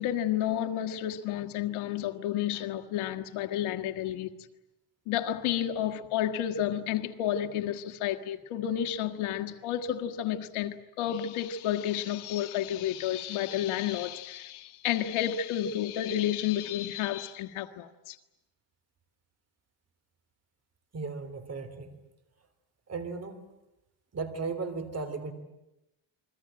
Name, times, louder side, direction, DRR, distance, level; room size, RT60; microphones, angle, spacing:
voice 1, 0.0-4.3 5.1-18.2, left 11 dB, 90° left, 1.8 m, -31 dB
voice 2, 20.9-22.0 22.9-23.4 24.1-25.3, right 4 dB, 30° right, 3.4 m, -36 dB
29.0 x 22.5 x 8.8 m
cardioid pair, 140°, 48 cm